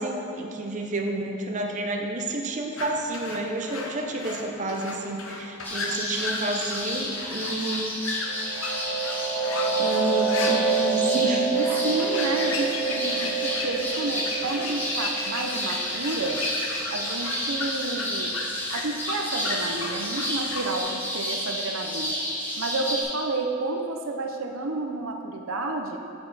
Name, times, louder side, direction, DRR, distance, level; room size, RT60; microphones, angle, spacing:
voice 1, 0.0-8.0 9.8-11.6, right 1 dB, 35° right, 1 dB, 0.7 m, -30 dB
sound 1, 2.8-20.8, left 3 dB, 80° left, 0.8 m, -35 dB
sound 2, 5.6-23.0, equal, 10° left, 1.4 m, -31 dB
sound 3, 8.2-17.7, right 5 dB, 55° left, 1.0 m, -28 dB
voice 2, 11.6-16.4 16.9-18.3 18.7-22.2 22.6-26.0, right 2 dB, 80° right, 3 dB, 0.6 m, -30 dB
7.7 x 6.6 x 4.1 m, 2.6 s
head